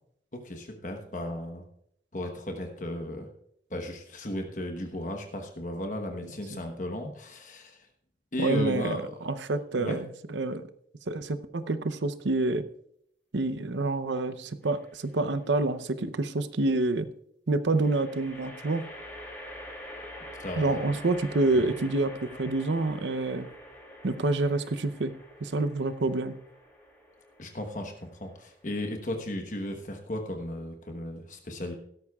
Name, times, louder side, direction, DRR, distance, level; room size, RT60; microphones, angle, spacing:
voice 1, 0.3-1.7 2.1-3.3 3.7-7.9 8.3-9.0 9.8-10.0 20.4-20.9 21.5-21.7 27.4-31.7, left 1 dB, 45° left, 4 dB, 1.1 m, -35 dB
voice 2, 8.4-9.0 9.2-10.7 11.1-12.7 13.3-17.1 17.5-18.9 20.6-23.5 24.0-25.1 25.4-26.4, right 2 dB, 85° right, 12 dB, 0.7 m, -27 dB
sound 1, 14.6-15.2 17.7-29.1, left 1 dB, 10° left, 2.7 m, -46 dB
16.5 x 13.0 x 2.4 m, 0.71 s
head